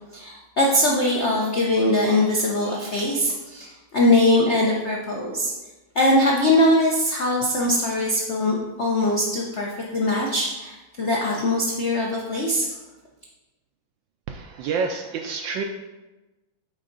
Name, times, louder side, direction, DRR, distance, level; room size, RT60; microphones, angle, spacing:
voice 1, 0.1-5.5 5.9-12.7, left 1 dB, 65° left, -3 dB, 0.6 m, -21 dB
voice 2, 14.3-15.6, right 5 dB, 75° right, 4 dB, 1.1 m, -28 dB
9.0 x 3.7 x 3.9 m, 1.1 s
omnidirectional pair, 2.4 m